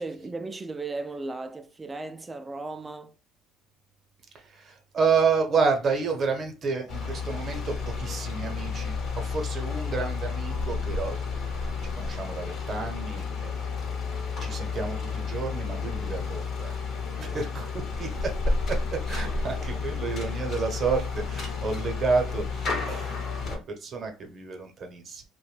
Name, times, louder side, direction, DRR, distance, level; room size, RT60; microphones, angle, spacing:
voice 1, 0.0-3.1 17.2-17.4 19.7-19.8, right 3 dB, 20° right, 0.4 m, -36 dB
voice 2, 4.3-11.2 11.9-13.5 14.3-16.8 17.2-18.3 18.7-18.8 19.1-25.2, right 5 dB, 45° right, 0.8 m, -30 dB
sound 1, 6.9-23.6, left 4 dB, 55° left, 0.9 m, -31 dB
2.5 x 2.2 x 3.1 m
supercardioid pair, 80°, 0 cm